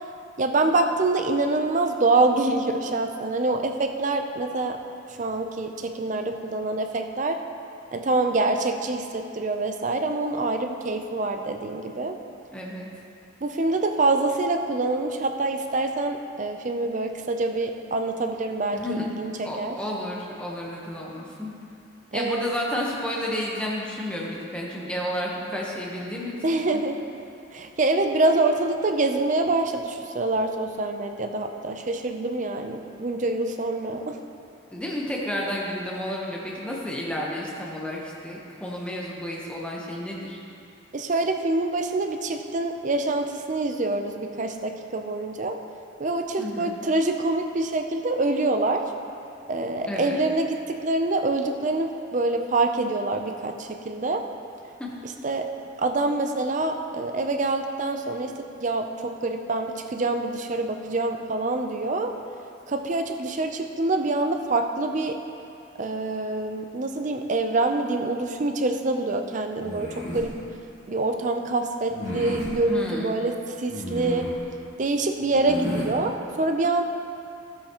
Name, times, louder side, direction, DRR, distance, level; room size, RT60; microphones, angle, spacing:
voice 1, 0.4-4.8 5.2-7.4 7.9-12.2 13.4-19.8 22.1-22.5 26.4-27.0 27.5-34.2 40.9-45.6 46.0-48.8 49.5-54.2 55.0-55.5 55.8-58.3 58.6-62.1 62.7-65.2 65.8-70.3 70.9-74.3 74.8-76.8, right 2 dB, 40° right, 5 dB, 0.5 m, -25 dB
voice 2, 12.5-12.9 18.7-19.0 19.4-21.5 22.1-26.6 34.7-40.4 46.4-46.7 49.9-50.2 54.8-54.9 72.7-73.2, left 1 dB, 5° left, -4 dB, 1.0 m, -31 dB
sound 1, 69.6-70.3 71.9-72.5 73.7-74.4 75.3-75.9, left 1 dB, 35° left, 2.0 m, -33 dB
13.0 x 8.1 x 3.0 m, 2.6 s
head